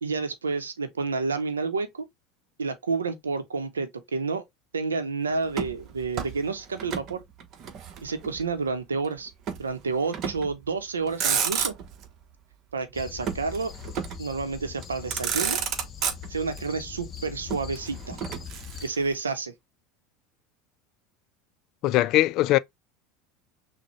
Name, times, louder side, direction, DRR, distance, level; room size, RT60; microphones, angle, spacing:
voice 1, 0.0-2.0 2.6-4.4 4.7-7.2 8.0-9.3 9.6-11.7 12.7-13.7 14.2-15.6 16.3-18.2 18.8-19.5, right 4 dB, 90° right, 0.7 m, -29 dB
Motor vehicle (road), 5.5-7.1 7.4-8.5 9.5-9.7 10.1-10.6 11.0-12.1 13.3-14.3 14.8-14.9 15.1-16.6 17.5-19.1, right 7 dB, 45° right, 0.8 m, -31 dB
sound 1, 12.9-18.9, left 7 dB, 40° left, 0.8 m, -42 dB
voice 2, 21.8-22.6, left 15 dB, 55° left, 0.3 m, -20 dB
6.0 x 2.1 x 3.0 m
hypercardioid pair, 80°, 0 cm